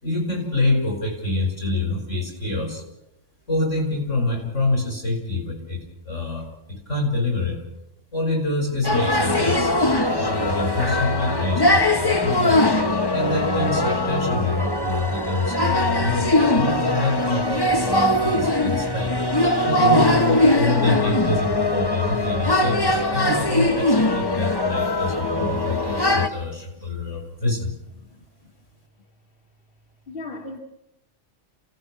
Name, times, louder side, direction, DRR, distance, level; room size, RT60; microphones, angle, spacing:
voice 1, 0.0-2.8 3.5-7.6 8.1-9.7 10.2-12.6 13.1-19.1 19.6-27.7, left 2 dB, 75° left, 6.4 m, -26 dB
sound 1, 8.8-26.3, left 1 dB, 20° left, 1.4 m, -21 dB
voice 2, 30.1-30.6, left 2 dB, 50° left, 2.2 m, -37 dB
28.5 x 17.5 x 6.3 m
omnidirectional pair, 1.3 m